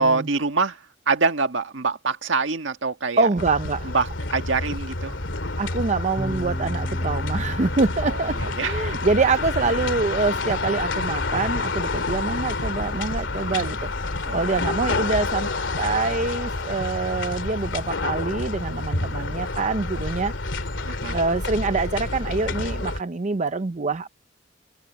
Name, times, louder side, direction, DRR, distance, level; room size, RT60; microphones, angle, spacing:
voice 1, 0.0-3.3 3.8-5.2 8.0-9.0 13.5-13.6 14.2-14.6 20.8-21.2, right 4 dB, 85° right, 1.7 m, -25 dB
voice 2, 3.2-3.9 5.6-13.8 14.3-15.5 15.8-20.3 21.1-24.1, right 3 dB, 40° right, 0.6 m, -25 dB
sound 1, 3.4-23.0, left 3 dB, 80° left, 2.6 m, -28 dB
sound 2, 6.2-15.6, equal, ahead, 3.5 m, -42 dB
head